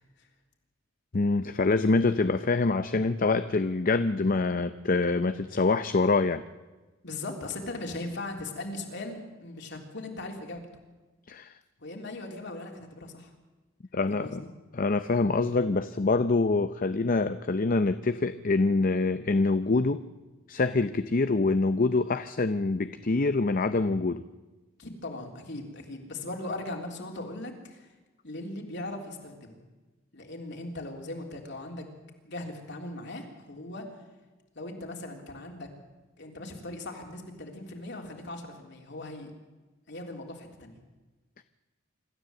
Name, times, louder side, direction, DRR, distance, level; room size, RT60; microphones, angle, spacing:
voice 1, 1.1-6.4 11.3-11.5 13.9-14.4 14.7-20.0 20.5-24.2, left 3 dB, 45° left, 11 dB, 0.6 m, -25 dB
voice 2, 7.0-10.6 11.8-13.3 14.1-14.5 24.8-27.9 28.2-29.6 30.1-31.9 32.2-33.8 34.5-35.7 36.2-39.3 39.9-40.8, left 2 dB, 60° left, 2 dB, 3.5 m, -39 dB
26.0 x 13.5 x 7.9 m, 1.2 s
head